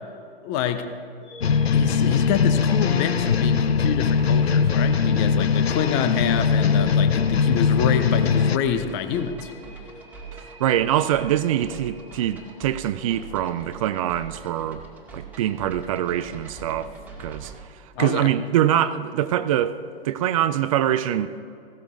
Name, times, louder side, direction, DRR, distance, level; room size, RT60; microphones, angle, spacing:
voice 1, 0.4-0.9 1.7-9.5 18.0-18.3, left 8 dB, 30° left, 0.9 m, -26 dB
sound 1, 1.2-13.3, left 1 dB, 55° left, 2.3 m, -47 dB
sound 2, 1.4-8.6, left 6 dB, 85° left, 0.5 m, -21 dB
sound 3, 1.7-17.6, right 5 dB, 5° right, 2.0 m, -43 dB
voice 2, 10.3-14.8 15.1-16.9 17.2-17.5 18.0-19.8 20.0-21.4, right 11 dB, 35° right, 0.5 m, -24 dB
16.0 x 13.5 x 3.8 m
figure-of-eight pair, 115°, 30 cm